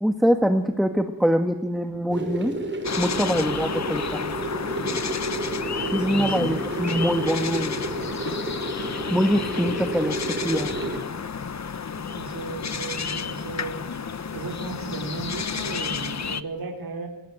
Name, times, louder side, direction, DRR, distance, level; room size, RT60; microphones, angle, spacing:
voice 1, 0.0-2.6 3.0-4.2 5.9-7.8 9.1-10.7, equal, ahead, 6 dB, 1.5 m, -24 dB
sound 1, 2.1-11.0, right 1 dB, 35° right, 6.5 m, -31 dB
sound 2, 2.8-16.4, left 6 dB, 50° left, 1.1 m, -31 dB
voice 2, 6.0-6.7 11.9-13.8 14.3-17.1, right 4 dB, 80° right, 1 dB, 4.2 m, -35 dB
27.0 x 21.5 x 9.2 m, 0.83 s
wide cardioid pair, 145°, 35 cm